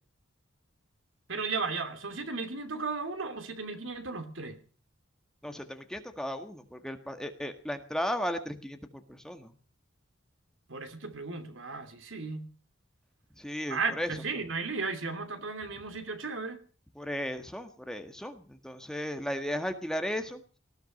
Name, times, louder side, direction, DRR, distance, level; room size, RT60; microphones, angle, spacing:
voice 1, 1.3-4.6 10.7-12.5 13.7-16.6, right 4 dB, 80° right, 2.8 m, -35 dB
voice 2, 5.4-9.5 13.4-14.1 17.0-20.4, equal, 5° left, 1.6 m, -35 dB
19.0 x 14.5 x 5.3 m
head